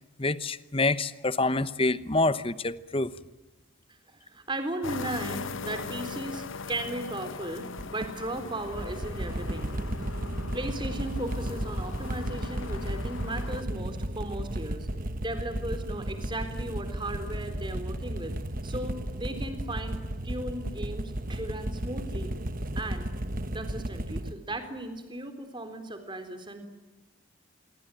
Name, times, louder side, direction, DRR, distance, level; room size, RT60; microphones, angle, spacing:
voice 1, 0.2-3.1, left 2 dB, 25° left, 15 dB, 1.0 m, -27 dB
voice 2, 4.1-9.7 10.5-14.9 15.2-18.3 18.6-22.3 22.8-23.1 23.5-26.7, right 1 dB, 20° right, 9 dB, 3.8 m, -36 dB
sound 1, 4.8-13.6, left 4 dB, 70° left, 0.9 m, -40 dB
sound 2, 7.8-24.3, right 1 dB, 40° right, 1.2 m, -34 dB
27.0 x 23.5 x 9.2 m, 1.1 s
head